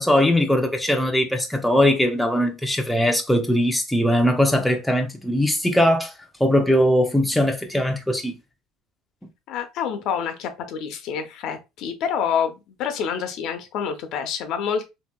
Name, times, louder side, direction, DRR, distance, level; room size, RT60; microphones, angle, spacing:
voice 1, 0.0-6.1 6.4-8.3, equal, ahead, 0.5 m, -20 dB
voice 2, 9.5-14.9, left 7 dB, 60° left, 0.6 m, -27 dB
2.8 x 2.7 x 2.2 m
cardioid pair, 120°, 0 cm